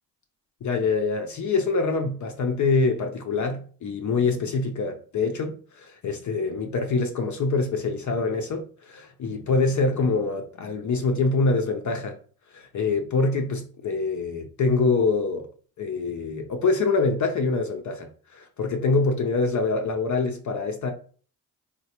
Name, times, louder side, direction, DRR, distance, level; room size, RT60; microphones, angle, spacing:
voice 1, 0.6-12.2 12.5-15.5 15.8-20.9, left 3 dB, 45° left, 0.5 m, -25 dB
3.0 x 2.2 x 2.9 m
supercardioid pair, 50°, 42 cm